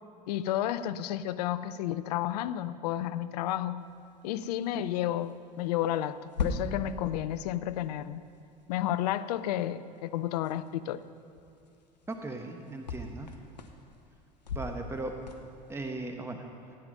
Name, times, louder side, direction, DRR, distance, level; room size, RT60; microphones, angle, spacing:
voice 1, 0.3-3.8 4.2-8.2 8.7-11.0, left 12 dB, 70° left, 14 dB, 0.5 m, -31 dB
sound 1, 3.8-15.9, left 4 dB, 85° left, 1.0 m, -42 dB
voice 2, 12.1-13.3 14.5-15.1 15.7-16.5, right 2 dB, 10° right, 4 dB, 1.1 m, -37 dB
15.5 x 9.6 x 5.5 m, 2.5 s
figure-of-eight pair, 70°, 21 cm